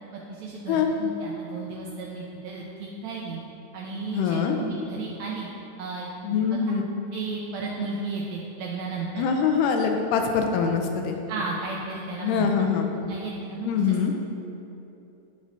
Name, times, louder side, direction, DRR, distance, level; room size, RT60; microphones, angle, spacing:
voice 1, 0.1-3.4 3.7-5.5 5.8-6.4 7.1-9.3 11.3-12.5 13.0-13.9, right 4 dB, 85° right, -3 dB, 1.6 m, -34 dB
voice 2, 4.1-4.6 6.2-6.9 9.2-11.2 12.2-12.9 13.6-14.1, left 6 dB, 85° left, 4 dB, 2.1 m, -24 dB
10.5 x 5.0 x 2.7 m, 2.9 s
omnidirectional pair, 3.7 m